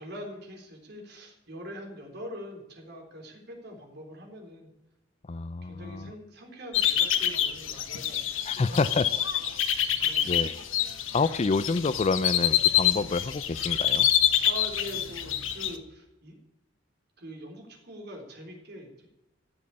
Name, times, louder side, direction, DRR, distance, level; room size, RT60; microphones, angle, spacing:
voice 1, 0.0-4.7 5.6-8.8 9.7-10.3 14.4-16.3 17.2-19.1, equal, 60° right, 2 dB, 3.8 m, -43 dB
voice 2, 5.3-6.1 8.5-9.1 10.2-10.5 11.1-14.1, left 4 dB, 35° left, 16 dB, 0.4 m, -28 dB
sound 1, 6.7-15.8, left 10 dB, 80° left, 1.2 m, -26 dB
14.5 x 7.6 x 8.5 m, 0.98 s
head